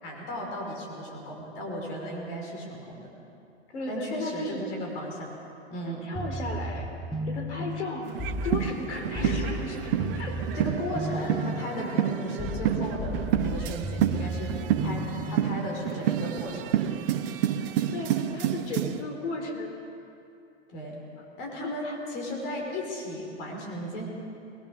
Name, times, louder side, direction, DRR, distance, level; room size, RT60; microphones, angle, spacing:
voice 1, 0.0-3.1 3.9-5.3 5.7-6.1 9.2-9.6 10.6-14.6 14.8-16.7 20.7-21.0 21.4-24.1, equal, 50° left, 0 dB, 5.5 m, -35 dB
voice 2, 3.7-4.6 5.9-6.9 7.3-8.1 8.4-10.5 17.9-19.7 21.2-21.3 21.6-22.0, left 2 dB, 70° left, 3 dB, 3.7 m, -35 dB
sound 1, 6.2-15.9, equal, ahead, 1.0 m, -35 dB
sound 2, 8.0-19.0, right 10 dB, 50° right, 1.2 m, -29 dB
22.5 x 20.5 x 6.7 m, 2.7 s
hypercardioid pair, 120°, 35 cm